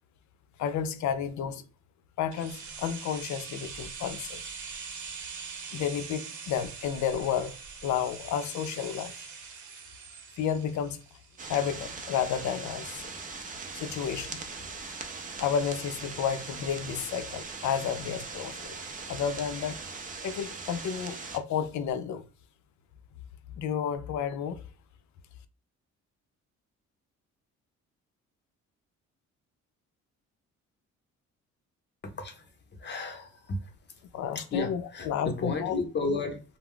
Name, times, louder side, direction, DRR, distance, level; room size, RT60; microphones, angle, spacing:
voice 1, 0.6-1.6 2.2-4.4 5.7-7.6 7.8-9.1 10.4-11.0 11.5-13.1 13.7-14.4 15.4-18.8 19.1-19.8 20.2-22.2 23.6-24.6 34.1-35.7, left 8 dB, 70° left, 0.5 m, -31 dB
sound 1, 2.3-12.1 12.4-12.5, right 5 dB, 70° right, 0.7 m, -43 dB
sound 2, 11.4-21.4, right 4 dB, 25° right, 0.5 m, -40 dB
voice 2, 32.0-33.7 34.3-36.4, left 3 dB, 35° left, 0.8 m, -33 dB
2.2 x 2.0 x 3.7 m
cardioid pair, 90°, 30 cm